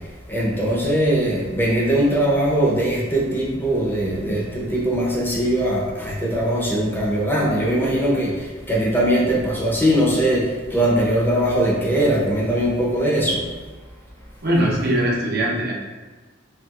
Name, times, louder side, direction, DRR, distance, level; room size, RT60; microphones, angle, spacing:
voice 1, 0.3-13.4, right 1 dB, 10° left, -4 dB, 0.7 m, -21 dB
voice 2, 14.4-15.7, right 1 dB, 55° right, -3 dB, 0.7 m, -21 dB
4.6 x 3.3 x 2.4 m, 1.3 s
head